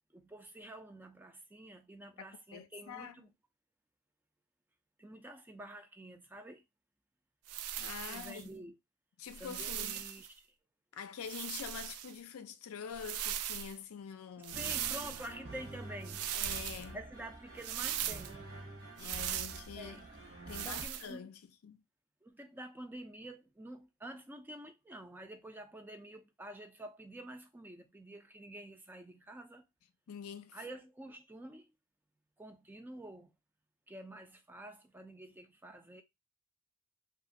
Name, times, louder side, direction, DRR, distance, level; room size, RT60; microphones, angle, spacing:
voice 1, 0.1-3.3 5.0-6.6 8.1-8.7 9.4-10.6 14.5-16.3 16.9-18.5 19.7-20.1 20.6-21.3 22.2-29.6 30.5-31.7 32.4-33.3 33.9-36.0, right 1 dB, 10° right, 0.3 m, -49 dB
voice 2, 2.2-3.2 7.8-8.5 9.2-10.0 10.9-14.7 16.3-17.0 19.0-20.0 20.5-21.8 30.1-30.6, left 7 dB, 75° left, 0.4 m, -46 dB
sound 1, 7.5-8.4 9.3-10.3 11.2-12.1 12.9-13.7 14.4-15.3 16.0-16.8 17.6-18.3 19.0-19.7 20.5-21.1, right 10 dB, 90° right, 0.3 m, -39 dB
sound 2, 14.5-20.9, right 1 dB, 50° right, 0.9 m, -48 dB
2.9 x 2.5 x 2.5 m
head